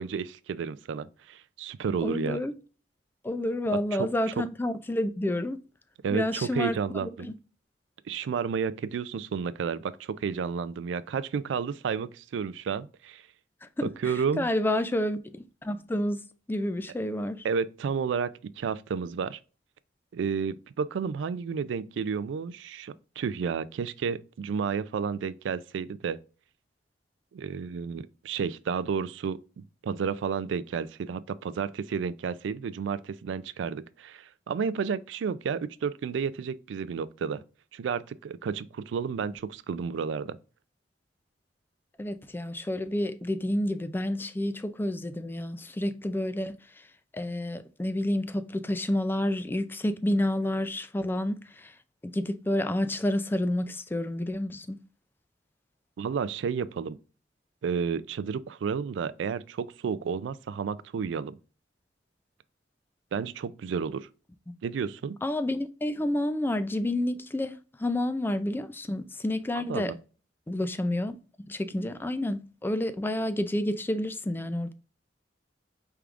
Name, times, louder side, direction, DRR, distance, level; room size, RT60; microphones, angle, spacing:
voice 1, 0.0-2.4 4.0-4.1 6.0-7.3 8.1-13.2 13.8-14.4 17.4-19.4 20.1-26.2 27.3-37.4 37.7-40.4 56.0-57.0 57.6-61.4 63.1-64.1 64.6-65.2 69.6-70.0, right 6 dB, 80° right, 0.3 m, -31 dB
voice 2, 2.0-2.5 3.2-5.6 6.1-7.3 13.8-13.9 14.4-16.2 16.5-17.5 42.0-46.6 47.1-51.7 52.0-54.8 65.2-67.5 67.8-69.9 70.5-71.2 71.5-74.7, left 1 dB, 10° left, 0.3 m, -29 dB
4.6 x 3.5 x 2.4 m
head